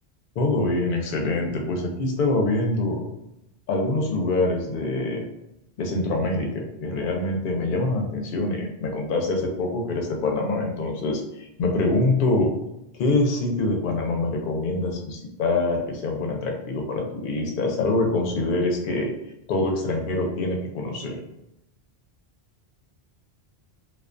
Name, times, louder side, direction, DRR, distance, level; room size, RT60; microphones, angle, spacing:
voice 1, 0.4-3.0 3.7-5.2 5.8-12.5 12.9-19.1 19.5-21.2, left 2 dB, 60° left, 1 dB, 0.6 m, -25 dB
2.2 x 2.2 x 2.4 m, 0.85 s
omnidirectional pair, 1.1 m